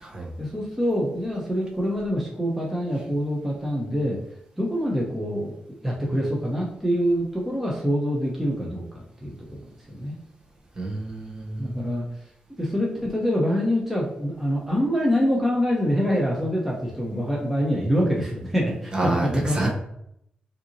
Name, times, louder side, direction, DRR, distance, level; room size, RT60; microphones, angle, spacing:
voice 1, 0.4-4.2 4.6-5.5 5.8-9.6 9.9-10.2 11.6-12.0 12.6-19.7, equal, 5° right, -3 dB, 0.9 m, -25 dB
voice 2, 10.8-11.8 18.9-19.7, right 2 dB, 30° right, -1 dB, 1.1 m, -28 dB
5.6 x 2.8 x 2.9 m, 0.75 s
cardioid pair, 90°, 3 cm